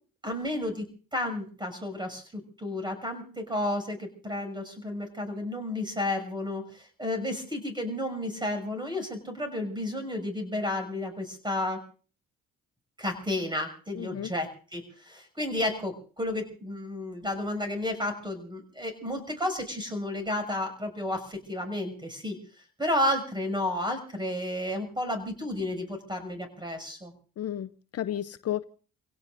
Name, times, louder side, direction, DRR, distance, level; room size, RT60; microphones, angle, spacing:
voice 1, 0.2-11.8 13.0-22.4 22.8-27.1, left 1 dB, 15° right, 6 dB, 6.4 m, -32 dB
voice 2, 14.0-14.3 27.4-28.6, left 11 dB, 55° left, 13 dB, 0.7 m, -33 dB
29.5 x 17.5 x 2.6 m, 0.40 s
cardioid pair, 90°, 30 cm